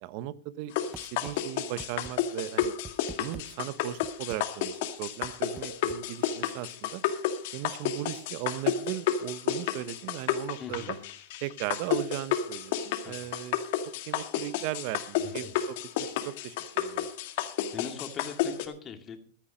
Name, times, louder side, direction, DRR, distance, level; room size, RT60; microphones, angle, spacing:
voice 1, 0.0-2.7 3.2-7.0 7.5-11.0 11.4-13.6 14.1-17.1, right 14 dB, 55° right, 17 dB, 0.9 m, -37 dB
sound 1, 0.8-18.7, left 10 dB, 65° left, 1.9 m, -31 dB
sound 2, 0.9-1.4 1.8-2.1 2.6-3.5 4.0-4.4 5.2-6.0, right 3 dB, 10° right, 0.8 m, -44 dB
voice 2, 10.6-11.0 13.0-13.3 15.2-15.3 17.4-19.2, left 6 dB, 25° left, 7 dB, 2.3 m, -41 dB
14.5 x 10.5 x 5.2 m, 0.43 s
supercardioid pair, 135°, 0 cm